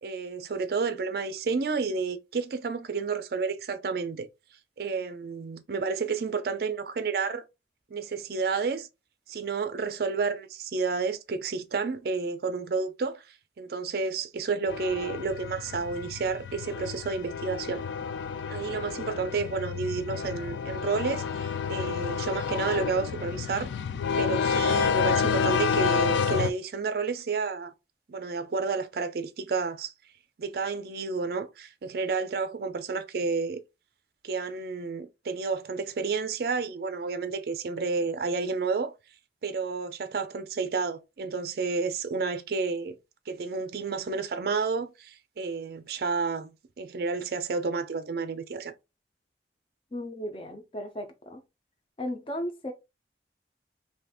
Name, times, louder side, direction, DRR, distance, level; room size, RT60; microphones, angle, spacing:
voice 1, 0.0-4.3 4.8-7.4 7.9-8.9 9.3-17.8 18.5-23.7 24.2-27.7 28.1-29.9 30.4-33.6 34.2-38.9 39.4-43.0 43.3-48.7, right 4 dB, 55° right, 0.4 m, -31 dB
sound 1, 14.7-26.5, left 6 dB, 80° left, 0.3 m, -29 dB
voice 2, 49.9-51.4 52.0-52.7, equal, 30° left, 0.6 m, -35 dB
2.6 x 2.5 x 3.5 m
head